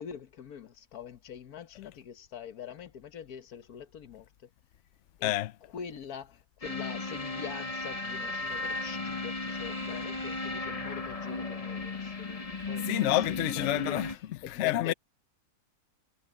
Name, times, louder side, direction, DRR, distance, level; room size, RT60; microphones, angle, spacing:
voice 1, 0.0-4.5 5.2-5.3 5.7-14.0 14.4-14.9, left 8 dB, 85° left, 1.6 m, -44 dB
sound 1, 6.6-14.2, left 3 dB, 30° left, 0.9 m, -35 dB
voice 2, 12.9-14.9, left 14 dB, 60° left, 0.8 m, -29 dB
omnidirectional pair, 1.5 m